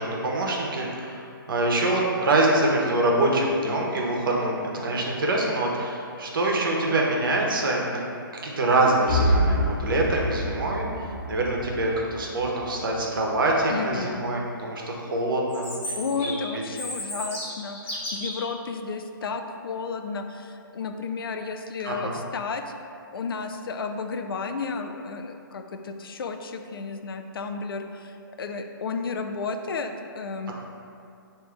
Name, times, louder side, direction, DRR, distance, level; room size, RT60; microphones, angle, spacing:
voice 1, 0.0-8.0 8.4-15.9 16.2-16.6 21.8-22.1, right 2 dB, 70° right, -1 dB, 0.8 m, -25 dB
sound 1, 9.1-13.0, equal, 5° right, 0.5 m, -27 dB
voice 2, 13.7-14.3 15.9-22.6 23.1-30.5, left 4 dB, 80° left, 6 dB, 0.4 m, -32 dB
Chirp tweet, 15.5-18.5, left 1 dB, 35° left, 1.0 m, -34 dB
6.3 x 2.7 x 2.3 m, 2.5 s
hypercardioid pair, 160°, 12 cm